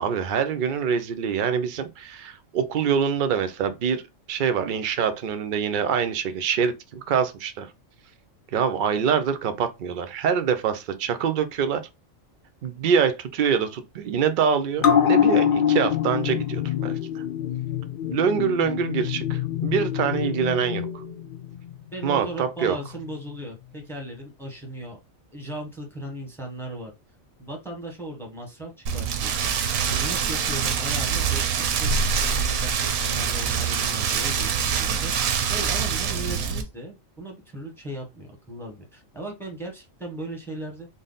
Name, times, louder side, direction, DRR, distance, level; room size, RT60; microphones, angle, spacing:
voice 1, 0.0-4.0 4.3-7.7 8.5-11.8 12.6-17.2 18.1-21.0 22.0-22.8, right 7 dB, 65° right, 0.5 m, -25 dB
sound 1, 14.8-21.7 22.0-22.1, left 9 dB, 55° left, 0.6 m, -24 dB
voice 2, 21.9-25.0 25.3-26.9 27.4-29.5 29.9-40.9, right 1 dB, ahead, 0.8 m, -37 dB
Rain, 28.9-36.6, right 6 dB, 90° right, 1.1 m, -25 dB
3.8 x 2.0 x 3.8 m
omnidirectional pair, 1.4 m